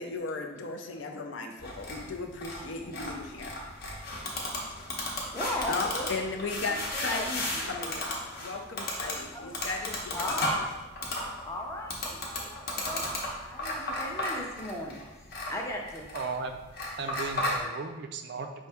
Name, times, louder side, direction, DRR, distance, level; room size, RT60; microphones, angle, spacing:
voice 1, 0.0-3.6 3.9-4.0 4.7-4.9 5.7-10.5, left 3 dB, 70° left, 3 dB, 0.5 m, -36 dB
sound 1, 1.6-17.6, left 1 dB, 50° left, 0.9 m, -35 dB
voice 2, 5.3-6.1 6.4-7.7 9.3-9.5 10.1-10.7 11.4-13.1 13.4-15.0 15.5-16.1, left 1 dB, 15° left, 0 dB, 0.5 m, -37 dB
voice 3, 16.1-16.6 17.0-18.7, right 4 dB, 55° right, 6 dB, 0.4 m, -36 dB
5.4 x 2.7 x 3.4 m, 1.1 s
head